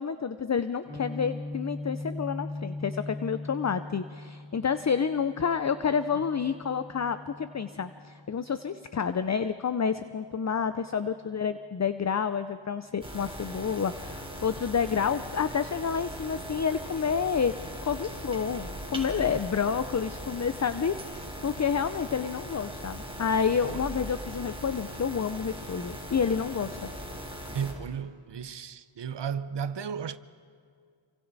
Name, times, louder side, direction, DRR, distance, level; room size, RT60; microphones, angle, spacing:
voice 1, 0.0-26.9, left 6 dB, 35° left, 0.5 m, -29 dB
Guitar, 0.9-8.7, left 2 dB, 15° left, 2.5 m, -40 dB
sound 1, 13.0-27.7, equal, 10° right, 4.0 m, -40 dB
voice 2, 27.5-30.2, right 7 dB, 65° right, 0.7 m, -34 dB
28.0 x 25.0 x 4.1 m
wide cardioid pair, 70°, 47 cm